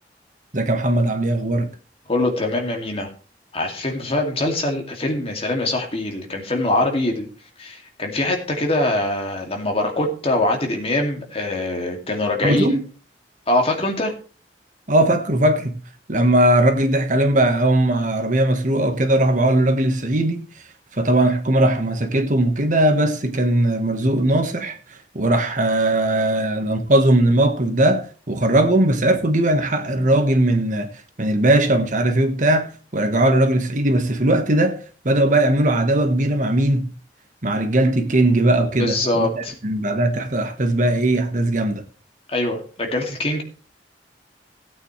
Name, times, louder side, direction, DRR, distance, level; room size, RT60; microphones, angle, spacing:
voice 1, 0.5-1.7 12.4-12.8 14.9-15.8 16.1-20.4 20.9-36.9 37.4-41.8, right 1 dB, 45° right, 1.4 m, -19 dB
voice 2, 2.1-3.1 3.5-7.3 7.6-12.8 13.5-14.1 38.8-39.5 42.3-43.4, left 2 dB, 35° left, 2.5 m, -23 dB
17.0 x 8.9 x 3.2 m
head